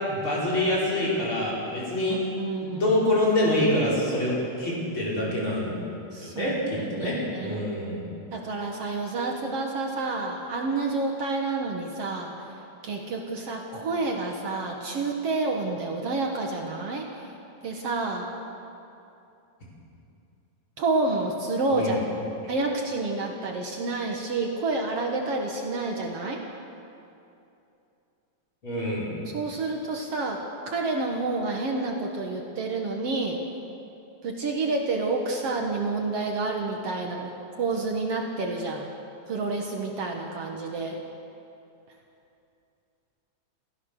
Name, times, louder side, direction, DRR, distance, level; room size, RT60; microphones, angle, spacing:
voice 1, 0.1-2.2 2.6-5.8 6.2-8.0 21.7-22.0 28.6-29.1, left 1 dB, 40° left, -6 dB, 5.9 m, -26 dB
voice 2, 2.1-2.8 6.1-6.6 7.0-7.6 8.3-12.3 12.8-17.3 17.6-18.3 20.8-22.0 22.5-26.4 29.3-33.4 34.2-37.3 37.6-38.9 39.3-41.0, right 3 dB, 60° right, 1 dB, 2.3 m, -29 dB
29.0 x 15.0 x 6.6 m, 2.7 s
omnidirectional pair, 3.4 m